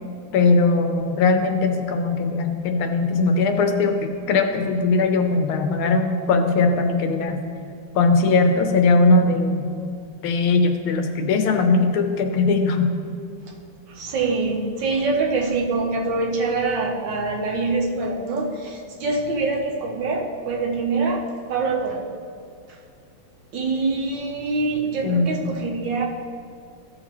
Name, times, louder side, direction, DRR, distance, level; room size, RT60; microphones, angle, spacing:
voice 1, 0.3-7.4 7.9-9.6 10.2-12.9 25.0-25.4, left 3 dB, 80° left, 5 dB, 1.6 m, -20 dB
voice 2, 13.9-22.0 23.5-26.0, right 3 dB, 65° right, 0 dB, 1.5 m, -24 dB
14.5 x 6.5 x 3.0 m, 2.3 s
omnidirectional pair, 2.3 m